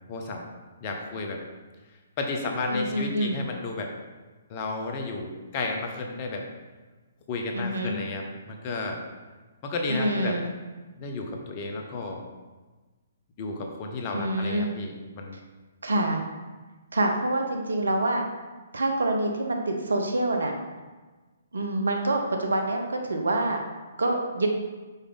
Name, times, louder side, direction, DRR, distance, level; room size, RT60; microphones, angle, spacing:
voice 1, 0.1-0.4 0.8-1.4 2.2-3.9 4.5-6.5 7.3-9.0 9.6-10.4 11.0-12.2 13.4-15.4, left 3 dB, 35° left, 2 dB, 0.9 m, -32 dB
voice 2, 2.7-3.4 7.5-8.0 9.9-10.5 14.1-14.7 15.8-16.2 16.9-18.2 18.7-20.5 21.5-23.6 24.0-24.5, right 1 dB, 70° right, 3 dB, 0.9 m, -26 dB
5.4 x 4.8 x 4.0 m, 1.3 s
figure-of-eight pair, 130°, 0 cm